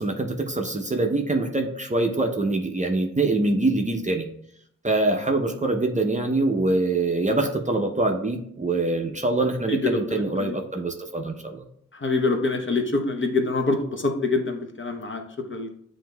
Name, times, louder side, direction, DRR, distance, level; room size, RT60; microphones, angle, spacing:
voice 1, 0.0-4.3 4.8-11.6, right 2 dB, 25° right, 3 dB, 0.6 m, -24 dB
voice 2, 9.7-10.6 11.9-15.2 15.5-15.7, left 3 dB, 40° left, 4 dB, 0.7 m, -25 dB
7.6 x 2.6 x 2.2 m, 0.69 s
cardioid pair, 45°, 32 cm